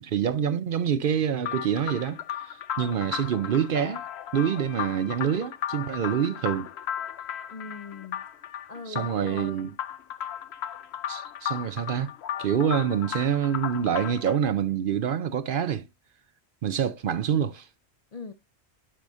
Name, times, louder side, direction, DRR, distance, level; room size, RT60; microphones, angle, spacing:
voice 1, 0.0-4.0 4.3-6.7 8.9-9.7 11.1-12.1 12.4-15.8 16.6-17.7, right 8 dB, 60° right, 0.7 m, -26 dB
sound 1, 1.4-14.4, left 10 dB, 75° left, 0.9 m, -36 dB
voice 2, 7.5-8.2 8.7-9.7 18.1-18.3, left 4 dB, 45° left, 0.5 m, -40 dB
11.0 x 4.8 x 2.6 m
omnidirectional pair, 1.1 m